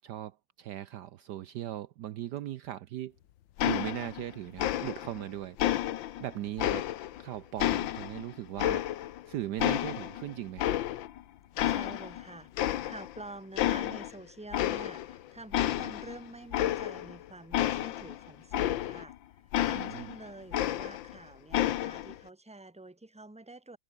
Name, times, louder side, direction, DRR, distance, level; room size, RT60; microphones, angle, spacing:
voice 1, 0.0-3.2 3.6-5.6 6.2-6.9 7.2-8.9 9.3-10.8 19.7-20.1, right 13 dB, 70° right, 1.2 m, -38 dB
sound 1, 3.6-4.3 4.6-5.2 5.6-7.2 7.6-9.3 9.6-11.2 11.6-12.2 12.6-13.2 13.6-14.1 14.5-15.2 15.5-19.1 19.5-21.2 21.5-22.2, left 13 dB, 85° left, 1.6 m, -31 dB
voice 2, 11.6-19.1 19.7-23.8, right 2 dB, 5° right, 1.6 m, -48 dB
omnidirectional pair, 2.1 m